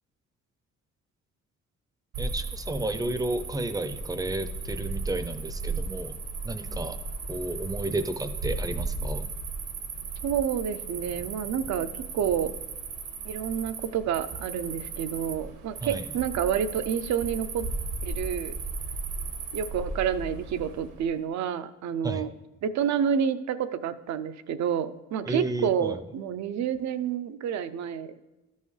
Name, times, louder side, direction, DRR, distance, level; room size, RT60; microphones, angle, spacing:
Cricket, 2.1-21.1, right 3 dB, 80° right, 1.3 m, -36 dB
voice 1, 2.2-6.1 6.4-7.0 7.3-9.3 15.8-16.0 22.0-22.3 25.3-26.0, right 2 dB, 10° right, 10 dB, 0.5 m, -32 dB
voice 2, 10.2-12.5 13.2-17.6 18.0-18.5 19.5-22.3 22.6-28.2, right 8 dB, 65° right, 11 dB, 0.6 m, -29 dB
13.0 x 5.5 x 3.2 m, 1.1 s
cardioid pair, 90°, 30 cm